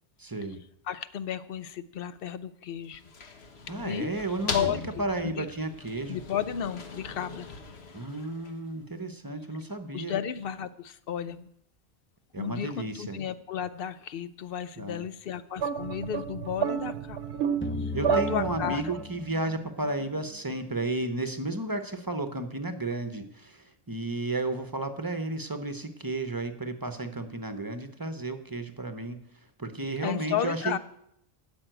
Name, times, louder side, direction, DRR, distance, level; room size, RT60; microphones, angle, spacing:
voice 1, 0.2-0.6 3.7-4.7 5.0-6.2 7.9-10.1 12.3-13.2 14.8-15.0 17.9-29.2 29.6-30.7, right 2 dB, 20° right, 8 dB, 0.9 m, -33 dB
voice 2, 0.9-3.0 3.8-4.1 4.5-4.9 5.2-5.5 6.1-7.5 9.9-11.5 12.4-17.2 17.8-18.8 30.0-30.8, left 9 dB, 65° left, 14 dB, 0.8 m, -33 dB
sound 1, 2.8-8.8, left 4 dB, 90° left, 1.4 m, -40 dB
sound 2, 15.6-19.0, right 7 dB, 80° right, 1.0 m, -30 dB
sound 3, 17.6-20.5, left 4 dB, 20° left, 0.3 m, -38 dB
12.5 x 5.4 x 9.0 m, 0.75 s
omnidirectional pair, 1.0 m